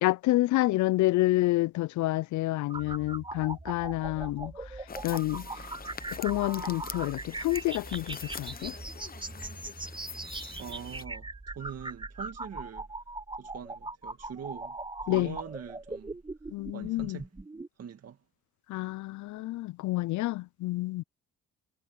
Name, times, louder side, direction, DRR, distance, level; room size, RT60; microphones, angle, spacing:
voice 1, 0.0-4.6 5.0-5.7 6.2-8.8 15.1-15.4 16.5-17.2 18.7-21.0, left 18 dB, 70° left, 0.5 m, -28 dB
sound 1, 2.7-17.7, right 2 dB, 15° right, 4.0 m, -40 dB
sound 2, 4.9-11.0, left 6 dB, 30° left, 1.0 m, -45 dB
voice 2, 10.6-12.9 13.4-16.2 16.7-17.3 17.8-18.2, right 8 dB, 55° right, 2.1 m, -43 dB
cardioid pair, 90°, 30 cm